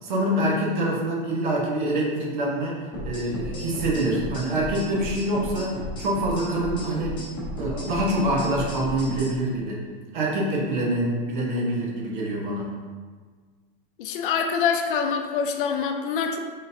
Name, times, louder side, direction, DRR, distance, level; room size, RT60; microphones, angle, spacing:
voice 1, 0.0-2.8 3.0-7.2 7.6-9.8 10.1-12.7, right 1 dB, 55° right, -3 dB, 1.0 m, -25 dB
sound 1, 2.9-9.3, equal, 15° left, 0.9 m, -33 dB
voice 2, 14.0-16.4, left 6 dB, 65° left, 4 dB, 0.5 m, -25 dB
4.0 x 3.8 x 2.7 m, 1.5 s
supercardioid pair, 170°, 29 cm